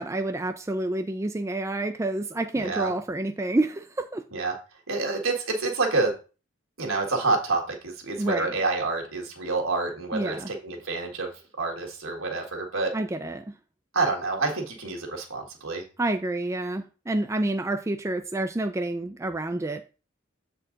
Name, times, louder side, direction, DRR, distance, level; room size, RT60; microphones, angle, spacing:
voice 1, 0.0-4.2 8.2-8.6 10.1-10.5 12.9-13.4 16.0-19.8, right 2 dB, 15° right, 6 dB, 0.4 m, -28 dB
voice 2, 2.6-2.9 4.3-4.5 4.9-6.2 6.8-11.3 11.6-13.0 13.9-15.8, right 3 dB, 75° right, 1 dB, 1.8 m, -28 dB
7.4 x 4.5 x 3.9 m, 0.34 s
head